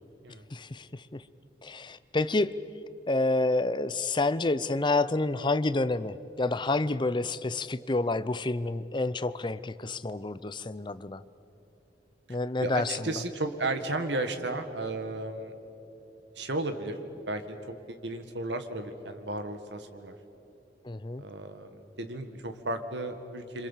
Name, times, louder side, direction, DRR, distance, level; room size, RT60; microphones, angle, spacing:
voice 1, 0.5-1.2 1.6-2.6 3.1-11.2 12.3-13.1 20.8-21.2, left 2 dB, 25° left, 15 dB, 0.6 m, -29 dB
voice 2, 12.6-15.5 16.4-17.0 17.3-20.2 21.2-23.7, right 2 dB, 85° right, 7 dB, 1.8 m, -34 dB
27.0 x 26.0 x 7.4 m, 2.9 s
head